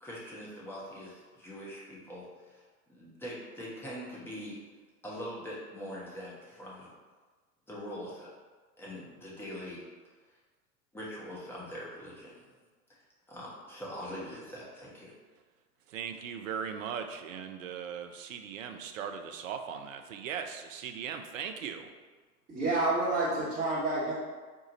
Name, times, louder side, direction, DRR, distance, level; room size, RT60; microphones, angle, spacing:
voice 1, 0.0-4.6 5.0-6.9 7.7-8.3 8.8-9.8 10.3-10.4 10.9-12.5 12.9-13.0 13.3-15.1, equal, 5° left, -6 dB, 0.9 m, -43 dB
voice 2, 15.9-21.9, right 7 dB, 55° right, 6 dB, 0.6 m, -39 dB
voice 3, 22.5-24.1, right 2 dB, 25° right, -11 dB, 1.2 m, -29 dB
4.7 x 2.4 x 3.9 m, 1.4 s
figure-of-eight pair, 95°, 47 cm